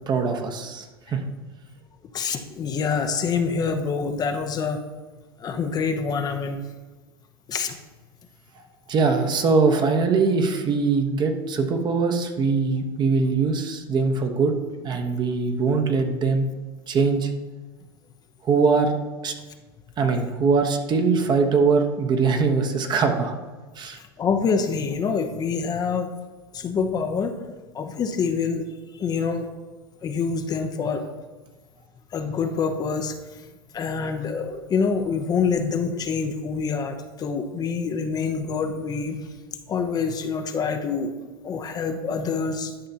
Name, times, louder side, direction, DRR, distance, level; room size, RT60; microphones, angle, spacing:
voice 1, 0.1-1.2 8.5-8.6 8.9-14.5 14.8-16.5 16.9-17.3 18.4-18.9 19.2-19.3 20.0-23.3 23.7-24.0, right 4 dB, 35° right, 4 dB, 1.1 m, -22 dB
voice 2, 2.1-4.8 5.4-6.6 7.5-7.8 23.9-26.1 26.5-27.4 27.7-29.5 30.0-31.0 32.1-33.5 33.7-39.3 39.7-41.1 41.4-42.9, left 5 dB, 30° left, 5 dB, 0.7 m, -26 dB
11.5 x 5.7 x 2.8 m, 1.3 s
hypercardioid pair, 100°, 12 cm